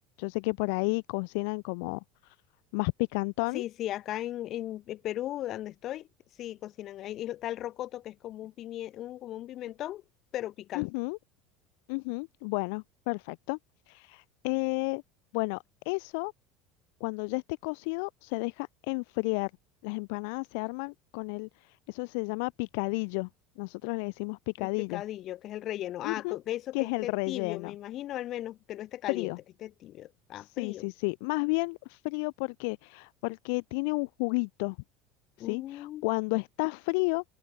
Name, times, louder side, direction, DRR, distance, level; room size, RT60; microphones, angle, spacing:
voice 1, 0.2-2.3 2.7-3.6 10.7-11.2 11.9-13.6 13.9-15.0 15.3-16.3 17.0-19.5 19.8-21.5 21.9-23.3 23.6-25.0 26.0-26.4 26.7-27.7 29.1-29.4 30.4-34.8 35.4-37.2, left 33 dB, 75° left, 0.4 m, -32 dB
voice 2, 3.5-6.1 6.4-10.0 10.3-10.9 24.6-29.3 29.6-30.9 35.4-36.0, left 13 dB, 50° left, 1.7 m, -37 dB
open air
supercardioid pair, 115°, 0 cm